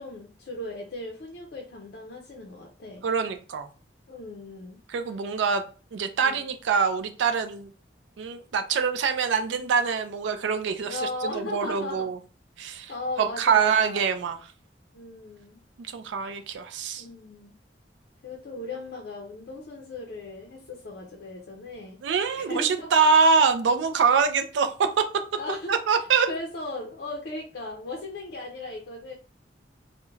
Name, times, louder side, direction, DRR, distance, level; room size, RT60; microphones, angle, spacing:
voice 1, 0.0-3.1 4.1-4.8 6.2-6.4 10.8-12.1 12.9-14.1 14.9-15.6 17.0-17.5 18.2-22.0 22.3-22.9 25.4-25.7 26.3-29.1, left 2 dB, 60° left, 0 dB, 0.4 m, -37 dB
voice 2, 3.0-3.7 4.9-5.6 5.9-7.7 8.2-12.2 12.6-12.9 13.2-14.4 15.9-17.0 22.0-25.2 25.7-26.3, right 5 dB, 85° right, 8 dB, 0.3 m, -24 dB
2.3 x 2.1 x 3.1 m, 0.36 s
head